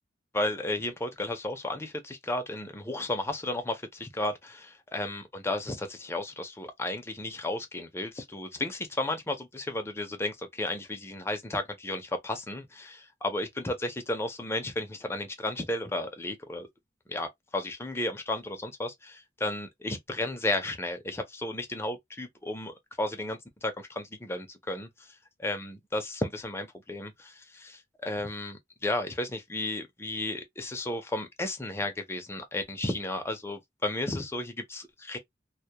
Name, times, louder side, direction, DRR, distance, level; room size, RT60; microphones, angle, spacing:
voice 1, 0.3-16.7 17.1-24.9 25.4-35.2, left 1 dB, 15° left, 0.5 m, -33 dB
2.2 x 2.1 x 2.8 m
head